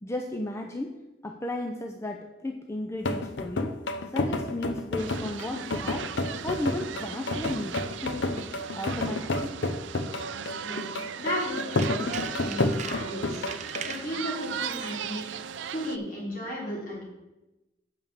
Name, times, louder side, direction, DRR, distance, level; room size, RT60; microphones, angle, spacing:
voice 1, 0.0-3.8 4.1-6.1 6.4-8.3 8.8-9.5, left 1 dB, 15° left, 3 dB, 0.5 m, -34 dB
sound 1, 3.0-13.9, left 2 dB, 90° left, 0.7 m, -31 dB
sound 2, 5.0-16.0, right 8 dB, 85° right, 0.4 m, -37 dB
voice 2, 11.2-13.4 13.8-15.4 15.7-17.0, left 1 dB, 50° left, -4 dB, 3.5 m, -34 dB
Tools, 11.3-14.1 14.6-14.9 15.2-15.3, right 7 dB, 40° right, 0.6 m, -41 dB
7.4 x 5.4 x 7.2 m, 1.0 s
head